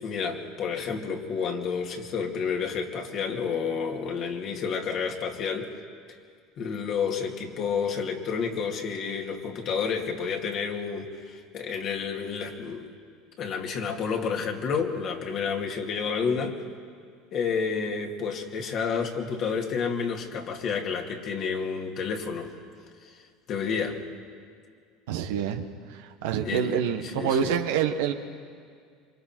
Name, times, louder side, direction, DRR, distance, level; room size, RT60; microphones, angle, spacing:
voice 1, 0.0-5.7 6.6-12.9 13.4-16.6 17.3-22.5 23.0-23.2 23.5-24.0 26.4-27.6, left 6 dB, 50° left, 1 dB, 2.7 m, -30 dB
voice 2, 25.1-28.1, right 8 dB, 75° right, 6 dB, 1.4 m, -27 dB
27.5 x 24.5 x 4.6 m, 2.1 s
hypercardioid pair, 85°, 0 cm